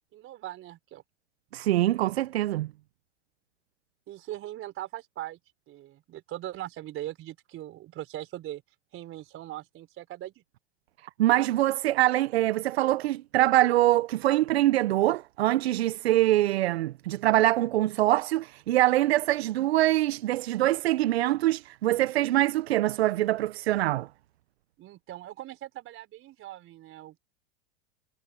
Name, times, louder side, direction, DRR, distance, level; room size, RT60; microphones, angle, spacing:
voice 1, 0.1-1.0 4.1-5.4 5.7-8.6 8.9-10.4 24.8-27.2, right 14 dB, 40° right, 4.5 m, -40 dB
voice 2, 1.5-2.7 11.2-24.1, right 15 dB, 80° right, 0.8 m, -24 dB
hypercardioid pair, 100°, 31 cm